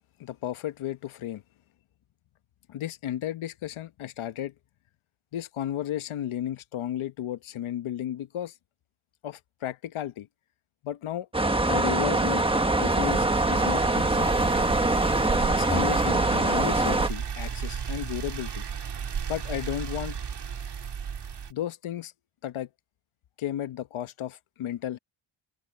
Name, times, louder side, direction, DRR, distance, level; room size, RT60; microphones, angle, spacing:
voice 1, 0.2-1.4 2.7-4.5 5.3-8.5 9.2-10.3 10.8-11.3 11.7-12.4 12.8-14.3 15.5-18.6 19.3-20.2 21.5-22.1 22.4-22.7 23.4-25.0, left 11 dB, 75° left, 1.0 m, -33 dB
sound 1, 11.3-17.1, right 2 dB, 10° right, 1.4 m, -24 dB
sound 2, 12.1-21.5, right 7 dB, 55° right, 2.4 m, -34 dB
open air
cardioid pair, 105°, 49 cm